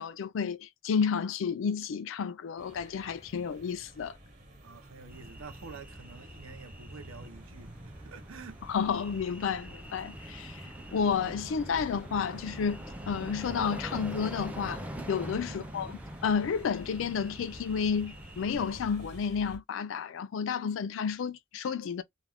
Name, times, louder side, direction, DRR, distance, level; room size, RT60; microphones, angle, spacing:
voice 1, 0.0-4.2 8.7-10.6 10.9-14.8 15.1-22.0, left 6 dB, 65° left, 0.4 m, -31 dB
sound 1, 2.6-19.6, equal, 40° right, 0.9 m, -51 dB
voice 2, 4.6-7.7 8.0-8.6 15.5-15.7, right 4 dB, 85° right, 0.7 m, -48 dB
sound 2, 5.1-18.8, equal, 5° right, 0.4 m, -44 dB
2.4 x 2.1 x 3.4 m
head